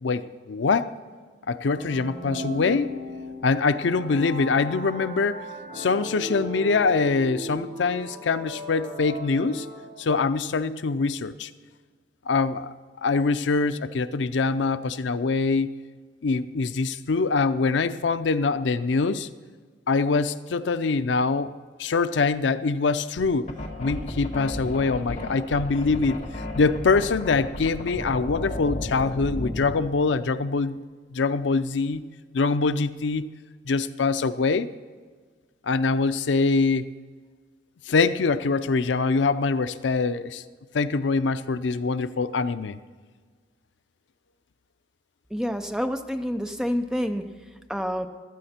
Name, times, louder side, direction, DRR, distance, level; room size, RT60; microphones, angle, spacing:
voice 1, 0.0-0.9 1.5-3.0 3.4-5.4 5.7-9.7 10.0-11.5 12.3-12.7 13.0-15.7 16.2-19.3 19.9-21.5 21.8-23.5 23.8-26.2 26.5-30.8 31.1-32.0 32.3-33.3 33.7-34.7 35.6-36.9 37.9-40.4 40.7-42.8, left 4 dB, 85° left, 13 dB, 0.5 m, -24 dB
sound 1, 1.7-10.3, left 1 dB, 70° right, 2.3 m, -37 dB
sound 2, 23.2-29.8, left 1 dB, 45° left, 1.6 m, -34 dB
voice 2, 45.3-47.2 47.7-48.1, equal, 5° right, 6 dB, 0.6 m, -28 dB
15.5 x 12.5 x 4.3 m, 1.5 s
head